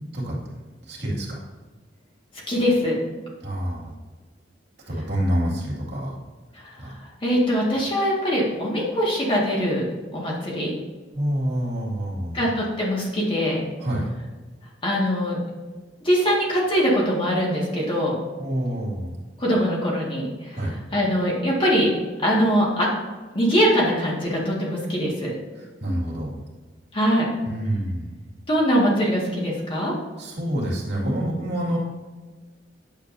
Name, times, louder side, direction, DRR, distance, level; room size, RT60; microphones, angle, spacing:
voice 1, 0.9-1.4 3.4-3.9 4.9-6.2 6.8-6.9 11.1-12.4 13.8-14.1 18.4-19.2 20.5-20.8 25.5-26.4 27.4-28.1 30.2-31.8, equal, 65° right, -5 dB, 2.4 m, -27 dB
voice 2, 2.5-2.9 7.2-9.9 10.1-10.7 12.3-13.6 14.8-15.4 16.0-18.2 19.4-20.3 20.9-21.9 22.2-22.9 23.3-25.3 26.9-27.3 28.5-29.9, equal, 30° left, -4 dB, 1.8 m, -22 dB
9.0 x 7.2 x 2.7 m, 1.3 s
head